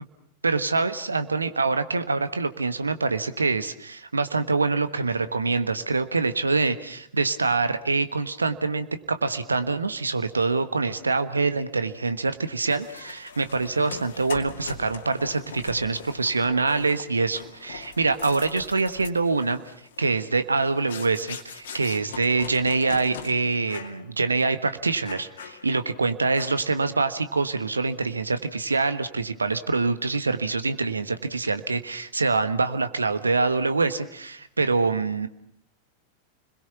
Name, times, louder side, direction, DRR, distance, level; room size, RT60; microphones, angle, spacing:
voice 1, 0.4-19.6 20.0-35.3, right 3 dB, 80° right, 11 dB, 1.3 m, -25 dB
sound 1, 12.7-23.3 23.7-24.0 24.4-24.5 25.1-25.9 26.3-26.8, left 6 dB, 60° left, 2.3 m, -41 dB
29.5 x 21.5 x 5.9 m, 0.65 s
figure-of-eight pair, 90°, 0 cm